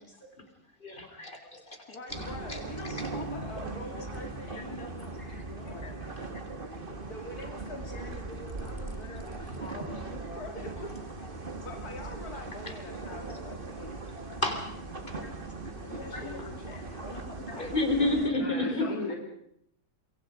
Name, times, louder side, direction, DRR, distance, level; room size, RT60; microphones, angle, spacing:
voice 1, 0.8-2.0 3.9-4.0 5.8-5.9 10.3-10.4 14.2-14.7 17.6-18.9, left 2 dB, 35° left, 6 dB, 3.7 m, -30 dB
voice 2, 1.9-6.1 7.1-11.4 11.6-14.2 15.8-17.9 18.6-19.0, left 3 dB, 90° left, 3 dB, 2.8 m, -44 dB
sound 1, 2.1-18.3, right 3 dB, 35° right, 2.1 m, -39 dB
voice 3, 18.4-19.2, left 2 dB, 70° left, 0 dB, 4.0 m, -39 dB
27.0 x 23.5 x 5.0 m, 0.72 s
omnidirectional pair, 1.6 m